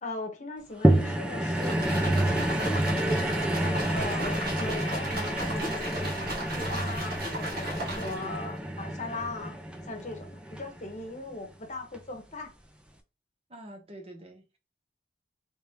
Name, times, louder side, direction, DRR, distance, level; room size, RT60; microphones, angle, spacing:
voice 1, 0.0-2.3 2.6-3.5 3.9-9.6 9.8-12.5, left 2 dB, 40° left, 0.9 m, -39 dB
sound 1, 0.8-11.3 11.9-12.0, right 1 dB, 5° right, 0.5 m, -29 dB
sound 2, 1.5-8.4, right 1 dB, 55° right, 1.4 m, -36 dB
voice 2, 13.5-14.6, right 1 dB, 35° right, 0.9 m, -46 dB
3.5 x 3.2 x 2.8 m
head